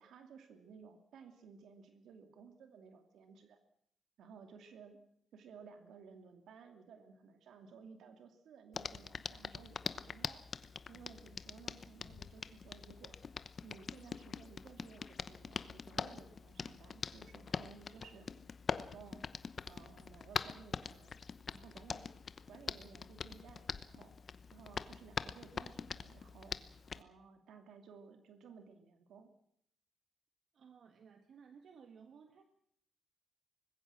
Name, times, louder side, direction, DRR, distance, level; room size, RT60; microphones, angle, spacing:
voice 1, 0.0-3.6 4.2-5.0 5.3-10.4 10.9-13.2 13.6-18.3 18.7-19.2 19.6-21.2 21.5-22.1 22.5-24.2 24.5-26.6 26.9-29.3, right 6 dB, 80° right, 6 dB, 2.6 m, -57 dB
Hands, 8.7-27.0, left 5 dB, 40° left, 0.9 m, -44 dB
voice 2, 30.5-32.4, right 6 dB, 55° right, 6 dB, 1.7 m, -58 dB
25.0 x 20.5 x 6.2 m, 0.70 s
cardioid pair, 150°, 0 cm